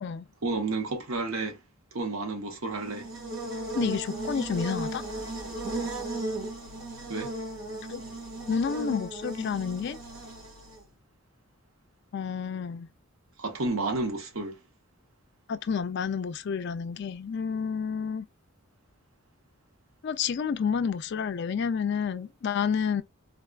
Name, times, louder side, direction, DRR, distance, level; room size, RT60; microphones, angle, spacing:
voice 1, 0.4-1.6 1.9-3.1 7.1-7.3 13.4-14.6, right 3 dB, 90° right, 1.0 m, -31 dB
Buzz, 2.7-10.8, right 2 dB, 65° right, 1.7 m, -36 dB
voice 2, 3.7-5.0 7.9-8.0 8.5-10.0 12.1-12.9 15.5-18.3 20.0-23.0, left 6 dB, 55° left, 0.4 m, -30 dB
3.8 x 2.3 x 2.3 m
head